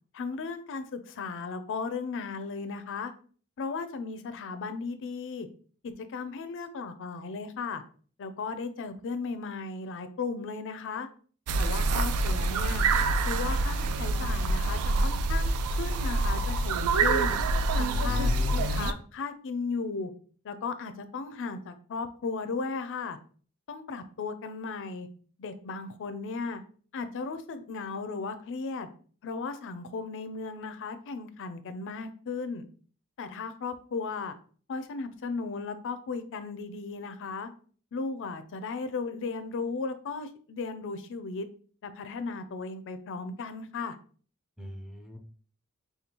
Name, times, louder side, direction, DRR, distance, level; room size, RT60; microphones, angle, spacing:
voice 1, 0.1-3.1 3.6-5.5 5.8-7.8 8.2-11.1 11.6-12.9 13.3-15.5 15.8-17.3 17.7-20.1 20.4-23.2 23.7-25.1 25.4-26.6 26.9-28.9 29.2-32.6 33.2-34.3 34.7-37.5 37.9-41.5 41.8-44.0, left 4 dB, 60° left, 10 dB, 0.4 m, -36 dB
sound 1, 11.5-18.9, right 2 dB, 85° right, 0.4 m, -26 dB
voice 2, 17.9-18.9 44.6-45.2, left 1 dB, ahead, 2 dB, 0.5 m, -38 dB
5.1 x 2.3 x 2.9 m, 0.43 s
head